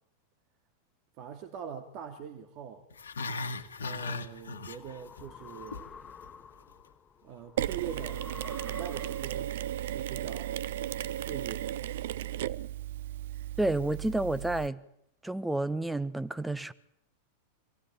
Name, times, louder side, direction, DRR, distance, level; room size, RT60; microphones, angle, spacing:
voice 1, 1.2-2.9 3.8-5.9 7.2-8.2 8.6-9.5 9.8-10.6 11.1-11.8, right 8 dB, 40° right, 2.6 m, -42 dB
Growling, 2.9-5.2 5.5-5.9 6.2-6.3, left 3 dB, 70° left, 1.9 m, -37 dB
sound 1, 3.8-9.6, left 7 dB, 20° left, 1.2 m, -50 dB
Mechanisms, 7.6-14.7, right 12 dB, 55° right, 0.9 m, -35 dB
voice 2, 13.6-14.8 15.2-16.7, right 2 dB, 5° right, 1.4 m, -30 dB
26.0 x 17.5 x 8.8 m
figure-of-eight pair, 90°, 0 cm